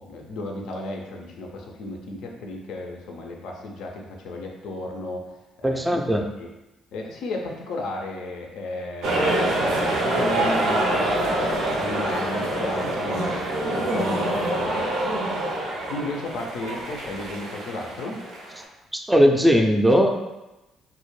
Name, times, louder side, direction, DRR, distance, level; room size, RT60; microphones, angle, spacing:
voice 1, 0.0-5.3 5.6-6.5 6.9-9.6 10.1-13.3 13.7-14.9 15.9-18.2, left 2 dB, 75° left, 1 dB, 0.4 m, -34 dB
voice 2, 5.6-6.3 18.9-20.3, equal, 10° right, 3 dB, 0.3 m, -19 dB
sound 1, 9.0-18.6, right 1 dB, 75° right, 0.5 m, -25 dB
2.1 x 2.0 x 3.0 m, 1.0 s
hypercardioid pair, 55°, 0 cm